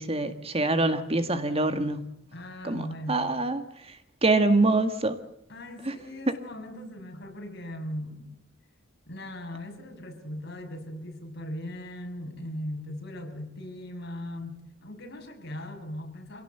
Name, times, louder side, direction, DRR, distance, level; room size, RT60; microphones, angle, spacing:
voice 1, 0.0-2.0 2.6-3.6 4.2-5.2 5.9-6.0 6.3-6.4, right 2 dB, 30° right, 2.0 m, -25 dB
voice 2, 2.3-3.3 5.5-8.4 9.1-16.4, left 1 dB, 60° left, 6.6 m, -39 dB
27.0 x 17.5 x 8.1 m
head